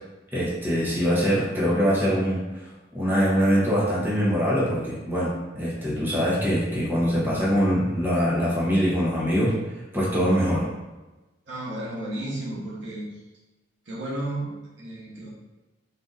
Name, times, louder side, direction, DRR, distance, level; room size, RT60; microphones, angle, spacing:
voice 1, 0.3-2.6 2.9-9.5 9.9-10.6, equal, 10° right, -7 dB, 0.8 m, -23 dB
voice 2, 11.5-13.2 13.9-15.3, right 1 dB, 85° right, -5 dB, 1.0 m, -33 dB
3.8 x 2.6 x 2.4 m, 1.1 s
head